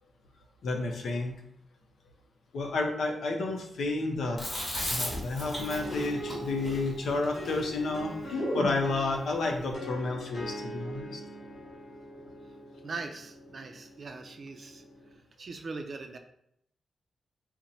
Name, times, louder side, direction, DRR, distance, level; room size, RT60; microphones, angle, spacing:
voice 1, 0.6-1.4 2.5-4.4 4.9-11.2, left 3 dB, 80° left, 2 dB, 0.7 m, -31 dB
Chewing mastication, 4.4-8.8, equal, 30° left, 1.6 m, -35 dB
sound 1, 5.5-15.1, left 1 dB, 55° left, 1.5 m, -43 dB
voice 2, 12.8-14.8 15.4-16.2, right 3 dB, 45° right, 6 dB, 0.4 m, -40 dB
4.4 x 2.1 x 4.0 m, 0.75 s
wide cardioid pair, 150°, 0 cm